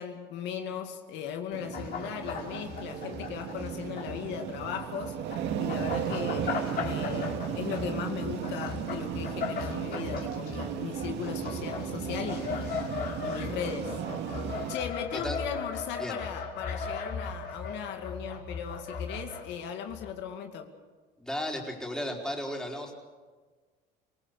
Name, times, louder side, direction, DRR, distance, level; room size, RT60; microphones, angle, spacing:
voice 1, 0.0-5.2 5.6-12.8 13.2-14.0 14.7-20.7, left 8 dB, 75° left, 2.2 m, -37 dB
sound 1, 1.5-14.7, right 9 dB, 70° right, 2.1 m, -35 dB
sound 2, 1.7-4.2 4.5-19.5 19.9-20.1, left 5 dB, 55° left, 5.0 m, -37 dB
voice 2, 21.2-22.9, left 1 dB, 5° left, 4.6 m, -34 dB
26.5 x 19.0 x 6.9 m
cardioid pair, 115°, 18 cm